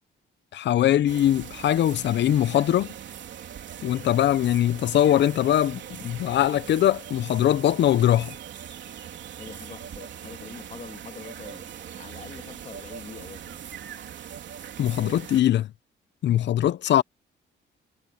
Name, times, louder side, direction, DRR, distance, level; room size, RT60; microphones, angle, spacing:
voice 1, 0.5-2.9 3.8-8.3 14.8-15.7 16.2-17.0, left 11 dB, 65° left, 0.7 m, -22 dB
sound 1, 1.1-15.4, right 9 dB, 65° right, 3.5 m, -41 dB
voice 2, 9.4-13.6, left 5 dB, 35° left, 2.4 m, -44 dB
cardioid pair, 90°, 20 cm